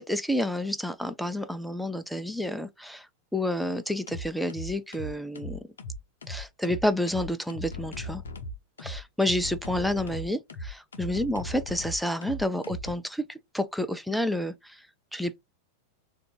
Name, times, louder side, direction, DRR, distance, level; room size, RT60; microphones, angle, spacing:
voice 1, 0.0-3.1 3.3-5.6 6.3-8.2 8.8-14.8 15.1-15.4, left 1 dB, ahead, 0.5 m, -29 dB
sound 1, 3.3-3.6 4.1-12.9, left 1 dB, 65° left, 0.8 m, -38 dB
3.4 x 2.6 x 4.3 m
figure-of-eight pair, 90°, 0 cm